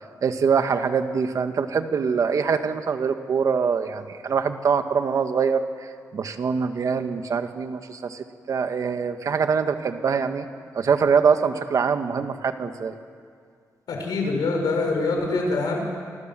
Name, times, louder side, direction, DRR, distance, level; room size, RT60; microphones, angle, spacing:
voice 1, 0.2-10.5 10.7-12.9, right 6 dB, 55° right, 7 dB, 1.7 m, -24 dB
voice 2, 13.9-15.8, left 3 dB, 85° left, 2 dB, 6.4 m, -24 dB
29.5 x 25.0 x 7.7 m, 2.1 s
wide cardioid pair, 150°, 7 cm